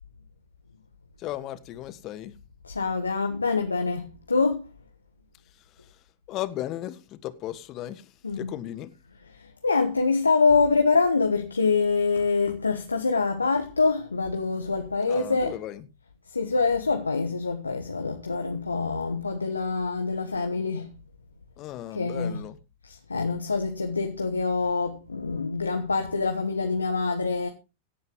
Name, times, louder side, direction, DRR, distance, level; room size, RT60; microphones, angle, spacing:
voice 1, 1.2-2.3 5.8-6.0 6.3-8.9 15.1-15.9 21.6-22.6, left 13 dB, 40° left, 1.5 m, -36 dB
voice 2, 2.6-4.6 8.2-8.6 9.4-15.5 16.3-20.9 21.9-22.4 22.9-27.5, left 4 dB, 85° left, 1.3 m, -25 dB
17.0 x 8.7 x 3.8 m
figure-of-eight pair, 95°, 0 cm